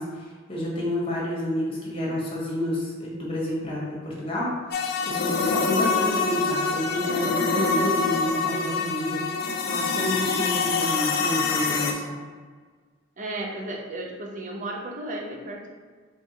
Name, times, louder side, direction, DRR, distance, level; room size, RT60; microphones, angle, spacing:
voice 1, 0.0-4.5 5.1-12.2, left 1 dB, 25° left, -5 dB, 1.0 m, -30 dB
sound 1, 4.7-11.9, left 4 dB, 50° left, 0.4 m, -25 dB
voice 2, 13.2-15.7, right 1 dB, 40° right, -1 dB, 0.6 m, -34 dB
3.4 x 3.4 x 2.9 m, 1.5 s
head